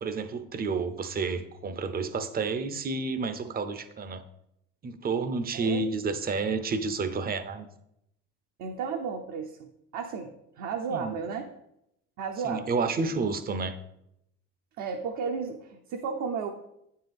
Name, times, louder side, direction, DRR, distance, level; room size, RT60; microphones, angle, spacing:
voice 1, 0.0-4.2 4.8-7.7 10.9-11.1 12.4-13.8, right 4 dB, 25° right, 11 dB, 0.6 m, -30 dB
voice 2, 5.5-5.8 8.6-11.4 12.2-12.7 14.8-16.5, right 5 dB, 60° right, 2 dB, 0.8 m, -33 dB
9.2 x 4.4 x 3.5 m, 0.81 s
hypercardioid pair, 70°, 34 cm